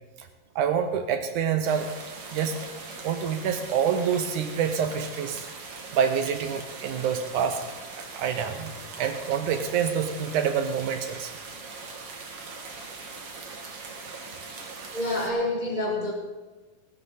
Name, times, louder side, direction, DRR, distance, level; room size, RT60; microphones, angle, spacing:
voice 1, 0.6-1.9 2.3-2.7 3.0-5.5 5.9-7.6 8.1-8.7 9.0-11.3, right 7 dB, 75° right, 7 dB, 2.3 m, -27 dB
sound 1, 1.6-15.3, right 4 dB, 50° right, 2.6 m, -41 dB
voice 2, 14.9-16.1, left 1 dB, 20° right, -1 dB, 1.6 m, -27 dB
19.0 x 12.5 x 4.2 m, 1.3 s
omnidirectional pair, 3.6 m